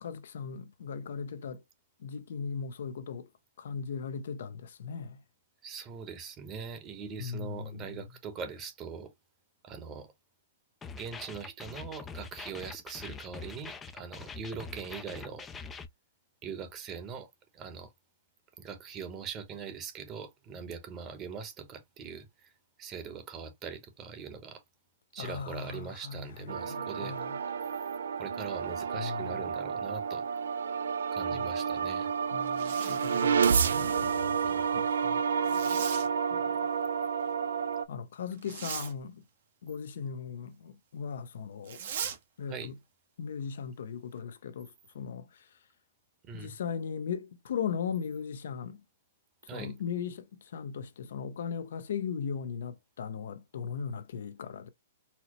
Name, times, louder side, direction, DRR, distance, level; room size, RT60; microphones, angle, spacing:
voice 1, 0.0-1.6 2.0-3.3 3.6-5.2 7.2-8.0 25.2-27.4 29.0-29.4 31.3-31.5 32.3-34.4 34.6-35.3 36.3-36.7 37.9-39.3 39.6-41.8 42.4-42.8 43.2-45.6 46.3-48.8 49.5-54.7, left 6 dB, 70° left, 0.5 m, -38 dB
voice 2, 5.6-9.1 9.6-10.1 10.9-15.5 16.4-17.9 18.6-22.5 22.8-24.6 25.1-27.1 28.2-30.2 31.1-32.1 34.4-34.8 42.5-42.7 46.3-46.6 49.5-49.7, right 6 dB, 25° right, 1.0 m, -42 dB
sound 1, 10.8-15.9, left 5 dB, 15° left, 0.4 m, -44 dB
sound 2, 26.5-37.9, right 6 dB, 85° right, 0.4 m, -30 dB
Zipper (clothing), 32.4-33.4 35.4-36.1 38.4-38.9 41.6-42.2, right 8 dB, 60° right, 1.0 m, -39 dB
4.2 x 2.0 x 2.9 m
hypercardioid pair, 150°, 0 cm